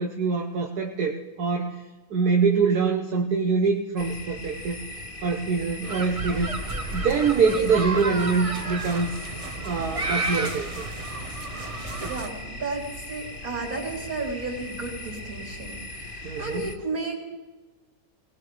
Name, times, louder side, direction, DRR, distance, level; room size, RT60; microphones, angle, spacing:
voice 1, 0.0-1.8 2.1-4.8 5.2-6.5 6.9-9.2 9.6-10.7 16.2-16.7, right 5 dB, 85° right, 1 dB, 1.6 m, -24 dB
sound 1, 4.0-16.8, left 1 dB, 35° left, 1.4 m, -39 dB
sound 2, 5.8-12.3, right 3 dB, 30° right, 0.8 m, -32 dB
voice 2, 12.1-17.3, right 3 dB, 70° right, -3 dB, 3.9 m, -33 dB
21.0 x 19.0 x 3.4 m, 1.2 s
omnidirectional pair, 1.6 m